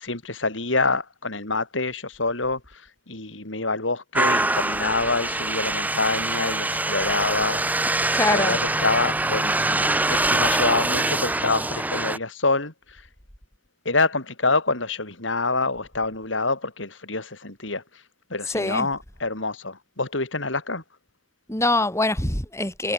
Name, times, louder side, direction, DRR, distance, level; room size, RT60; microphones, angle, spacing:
voice 1, 0.0-2.6 3.1-7.6 8.3-12.7 13.8-17.8 18.3-20.8, left 3 dB, 80° left, 5.8 m, -26 dB
sound 1, 4.1-12.2, right 2 dB, 10° right, 0.7 m, -24 dB
voice 2, 8.1-8.6 18.5-18.9 21.5-22.9, left 2 dB, 15° left, 3.2 m, -24 dB
head